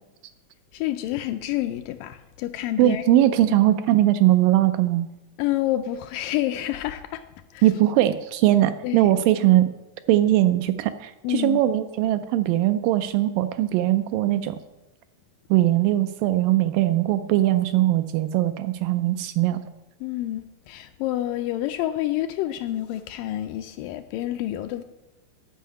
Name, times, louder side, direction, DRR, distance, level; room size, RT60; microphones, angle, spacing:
voice 1, 0.7-3.6 5.4-7.2 7.5-7.6 8.8-9.1 11.2-11.6 20.0-24.8, left 14 dB, 80° left, 8 dB, 2.0 m, -28 dB
voice 2, 2.8-5.1 7.6-9.7 10.1-14.6 15.5-19.6, right 14 dB, 80° right, 10 dB, 2.1 m, -20 dB
11.5 x 5.5 x 8.4 m, 1.0 s
omnidirectional pair, 4.2 m